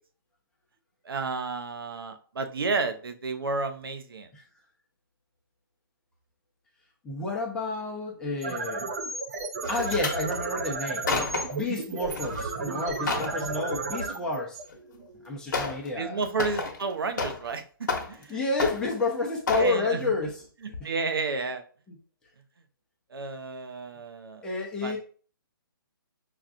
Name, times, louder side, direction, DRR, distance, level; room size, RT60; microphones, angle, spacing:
voice 1, 1.0-4.3 16.0-18.4 19.6-20.1 20.8-21.6 23.1-24.4 24.8-24.9, right 4 dB, 75° right, 8 dB, 0.8 m, -31 dB
voice 2, 7.0-8.8 9.7-11.1 11.5-14.6 15.2-16.2 18.3-20.4 20.8-20.9 21.9-22.0 24.4-25.0, left 3 dB, 5° left, -2 dB, 0.6 m, -30 dB
sound 1, 8.2-15.3, right 3 dB, 45° right, 0.6 m, -33 dB
sound 2, 9.6-10.2 10.8-11.6 12.1-12.4 12.8-13.4 14.7-14.8 15.5-15.9 16.2-17.5 17.8-18.3 18.6-19.1 19.5-19.7 20.2-20.4 20.7-20.8, left 4 dB, 50° left, 1.0 m, -31 dB
5.8 x 2.4 x 2.5 m, 0.41 s
hypercardioid pair, 150°, 12 cm